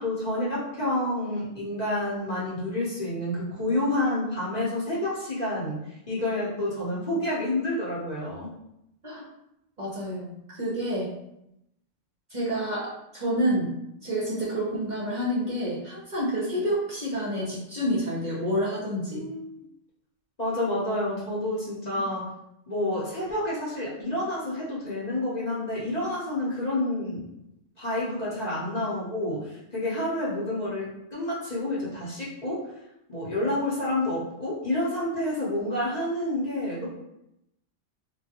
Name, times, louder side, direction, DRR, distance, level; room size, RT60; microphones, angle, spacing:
voice 1, 0.0-5.8 6.1-8.5 16.4-16.6 19.1-19.5 20.4-22.3 22.7-27.3 27.8-32.7 33.1-36.9, left 1 dB, 40° left, -7 dB, 0.9 m, -29 dB
voice 2, 9.8-11.1 12.3-13.7 14.0-19.2 21.9-22.0, equal, 45° right, -6 dB, 0.7 m, -28 dB
3.4 x 2.3 x 2.8 m, 0.83 s
omnidirectional pair, 1.2 m